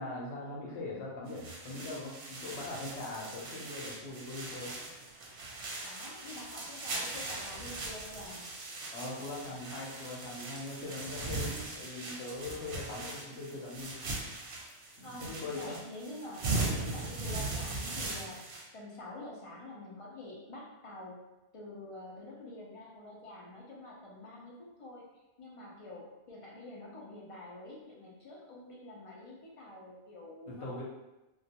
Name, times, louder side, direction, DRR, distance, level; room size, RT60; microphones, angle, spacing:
voice 1, 0.0-4.7 8.9-14.0 15.0-15.8 18.0-18.2 30.5-30.8, left 2 dB, 90° left, -3 dB, 1.0 m, -41 dB
wind blow plastic mono, 1.3-18.6, right 2 dB, 60° right, 0.7 m, -39 dB
voice 2, 5.8-8.5 15.0-18.4 18.7-21.2 21.5-25.0 25.4-30.8, left 1 dB, 45° left, -4 dB, 0.4 m, -47 dB
2.3 x 2.2 x 2.7 m, 1.0 s
omnidirectional pair, 1.1 m